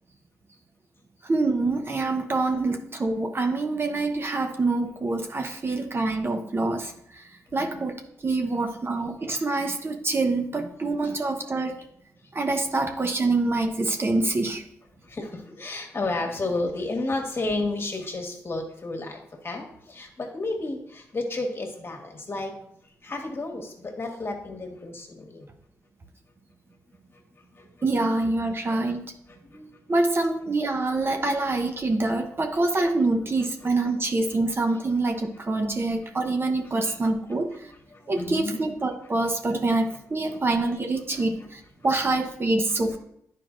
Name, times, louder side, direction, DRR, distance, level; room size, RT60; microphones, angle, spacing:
voice 1, 1.2-7.2 7.5-8.0 8.2-11.8 12.3-14.6 27.8-29.0 29.9-37.5 38.1-43.0, right 2 dB, 40° right, 5 dB, 0.8 m, -25 dB
voice 2, 7.5-7.9 11.6-11.8 15.1-22.5 23.0-25.5 27.6-27.7 29.3-29.7 34.1-34.4 34.7-34.8 36.8-37.0 37.9-38.6 40.3-40.4 41.4-41.5 42.7-43.0, left 2 dB, 40° left, 2 dB, 1.6 m, -32 dB
10.0 x 4.7 x 2.5 m, 0.73 s
supercardioid pair, 50°, 6 cm